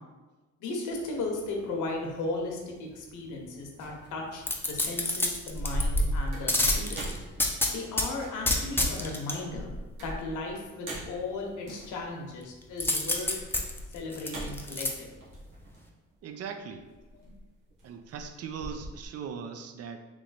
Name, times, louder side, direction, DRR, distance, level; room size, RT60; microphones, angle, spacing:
voice 1, 0.6-7.0 7.7-9.7 10.0-13.4 13.9-15.1, left 2 dB, 85° left, 1 dB, 0.9 m, -36 dB
sound 1, 3.8-4.1 4.6-5.0 5.3-7.8 8.2-8.5 9.4-12.0 13.2-15.8 16.9-17.8 18.1-19.1, equal, 90° right, 1.2 m, -35 dB
sound 2, 4.4-6.0 6.5-8.1 8.4-9.3 12.8-14.9 15.3-15.4, left 2 dB, 5° left, 0.5 m, -28 dB
voice 2, 16.2-16.8 17.8-20.0, right 6 dB, 55° right, 7 dB, 0.5 m, -39 dB
3.2 x 3.0 x 4.0 m, 1.2 s
cardioid pair, 90°, 30 cm